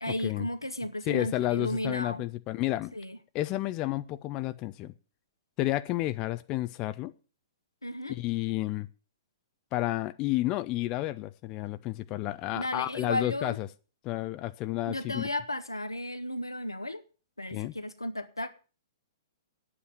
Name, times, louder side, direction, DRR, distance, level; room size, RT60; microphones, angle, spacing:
voice 1, 0.0-2.2 2.9-3.2 7.8-8.2 12.5-13.6 14.9-17.0 17.4-18.5, left 1 dB, 90° left, 1.4 m, -34 dB
voice 2, 1.1-2.9 3.3-4.9 5.6-7.1 8.1-8.9 9.7-13.7 14.0-15.3 17.5-17.7, left 16 dB, 30° left, 0.7 m, -31 dB
9.7 x 8.7 x 7.7 m
figure-of-eight pair, 115°, 2 cm